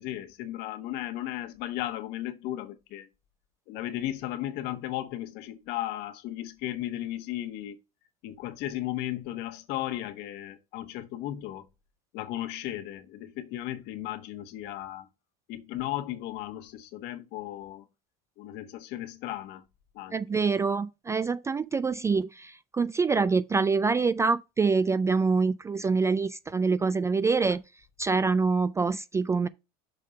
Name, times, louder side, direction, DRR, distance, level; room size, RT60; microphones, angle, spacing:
voice 1, 0.0-3.1 3.7-7.8 8.2-11.6 12.1-15.1 15.5-17.9 18.4-19.6 19.9-20.2, left 14 dB, 60° left, 1.4 m, -35 dB
voice 2, 20.1-27.6 28.0-29.5, right 4 dB, 15° right, 0.3 m, -25 dB
6.5 x 3.7 x 5.3 m
supercardioid pair, 105°, 19 cm